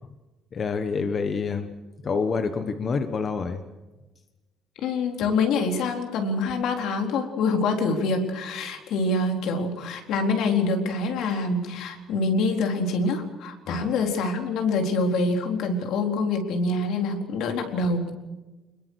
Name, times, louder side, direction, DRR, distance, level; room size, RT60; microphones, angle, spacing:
voice 1, 0.5-1.7 2.0-3.6 13.7-13.9, left 5 dB, 30° left, 8 dB, 1.3 m, -27 dB
voice 2, 4.8-18.1, left 3 dB, 70° left, 4 dB, 4.1 m, -25 dB
26.5 x 21.5 x 6.5 m, 1.2 s
cardioid pair, 170°, 0 cm